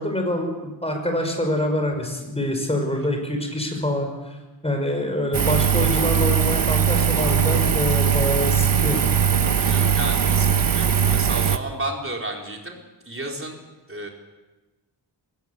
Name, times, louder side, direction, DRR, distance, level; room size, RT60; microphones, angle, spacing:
voice 1, 0.0-4.4 4.6-9.0, left 1 dB, 15° left, 4 dB, 5.6 m, -25 dB
Engine, 5.3-11.6, right 7 dB, 50° right, 1.0 m, -20 dB
voice 2, 9.4-12.8 13.1-13.6 13.9-14.1, right 1 dB, 30° right, 1 dB, 4.3 m, -32 dB
22.5 x 17.5 x 8.3 m, 1.2 s
wide cardioid pair, 105°, 44 cm